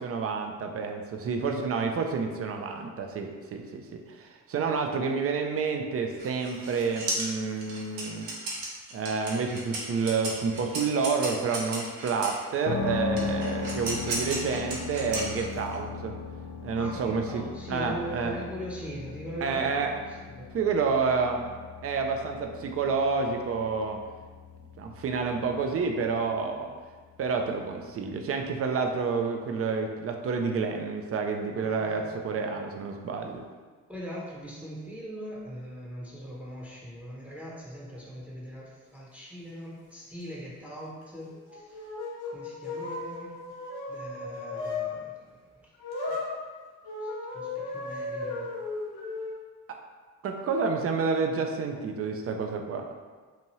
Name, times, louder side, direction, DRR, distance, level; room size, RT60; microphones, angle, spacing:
voice 1, 0.0-8.3 8.9-16.1 16.6-18.4 19.4-19.9 20.5-21.5 21.8-24.0 24.8-26.7 27.2-33.4 50.2-52.8, right 5 dB, 35° right, 3 dB, 0.4 m, -29 dB
sound 1, 6.2-12.4 13.2-15.8, right 2 dB, 65° right, 0.8 m, -35 dB
sound 2, 12.6-28.5, left 4 dB, 35° left, 0.4 m, -39 dB
voice 2, 16.8-20.6 31.6-32.1 32.5-32.7 33.9-41.8 42.2-43.4 43.9-45.4 47.0-48.5, equal, 5° right, -5 dB, 0.8 m, -41 dB
sound 3, 41.3-44.9 45.8-46.3 46.8-49.3, left 3 dB, 55° left, 1.1 m, -35 dB
2.8 x 2.6 x 3.0 m, 1.5 s
hypercardioid pair, 45°, 46 cm